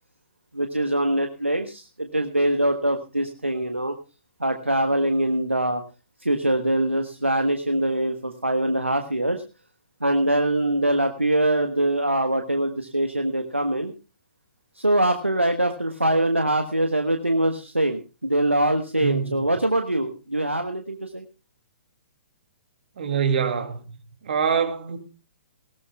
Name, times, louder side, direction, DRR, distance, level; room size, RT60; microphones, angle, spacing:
voice 1, 0.5-3.9 4.4-5.8 6.2-9.4 10.0-13.9 14.7-21.2, right 1 dB, 90° right, 1.3 m, -23 dB
voice 2, 19.0-19.4 23.0-23.8 24.2-25.0, right 7 dB, 55° right, 2.7 m, -24 dB
19.0 x 18.0 x 2.3 m
figure-of-eight pair, 120°, 6 cm